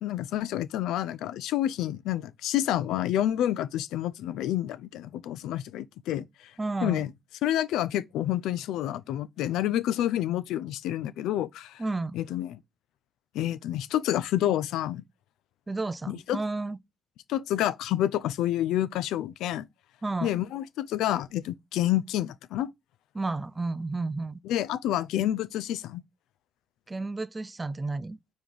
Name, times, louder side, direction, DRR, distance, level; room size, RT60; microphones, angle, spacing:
voice 1, 0.0-6.2 6.8-7.1 7.4-11.8 12.1-12.6 13.3-15.0 16.1-16.4 17.3-19.7 20.2-22.7 24.4-26.0, left 12 dB, 90° left, 0.3 m, -28 dB
voice 2, 6.6-7.0 11.8-12.2 15.7-16.8 20.0-20.4 23.1-24.4 26.9-28.2, right 3 dB, 20° right, 0.4 m, -32 dB
5.1 x 4.8 x 3.8 m
cardioid pair, 90°, 0 cm